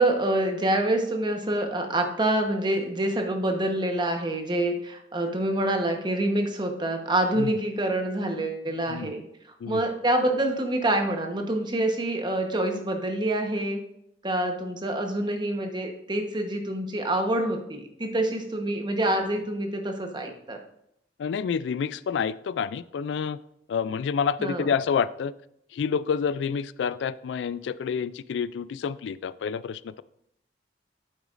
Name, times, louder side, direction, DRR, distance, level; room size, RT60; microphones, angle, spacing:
voice 1, 0.0-9.2 9.7-13.8 14.2-20.6 24.4-24.7, right 1 dB, 25° right, 4 dB, 1.0 m, -26 dB
voice 2, 21.2-23.4 23.7-25.3 25.7-30.0, left 6 dB, 85° left, 17 dB, 0.3 m, -28 dB
8.9 x 8.0 x 2.5 m, 0.74 s
head